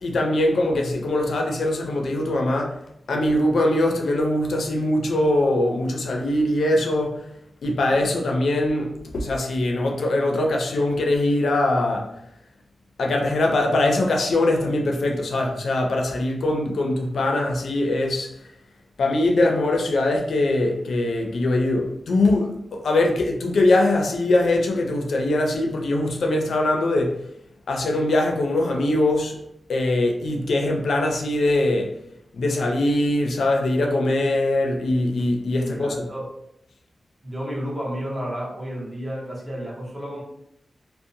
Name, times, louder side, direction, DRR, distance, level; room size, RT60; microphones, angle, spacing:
voice 1, 0.0-2.8 3.1-7.3 7.6-12.1 13.0-18.3 19.0-27.2 27.7-29.3 29.7-31.9 32.3-36.0, left 1 dB, 90° left, 0.4 m, -22 dB
voice 2, 35.6-36.3 37.2-40.2, equal, 15° right, 0.8 m, -31 dB
2.6 x 2.0 x 2.5 m
wide cardioid pair, 155°, 0 cm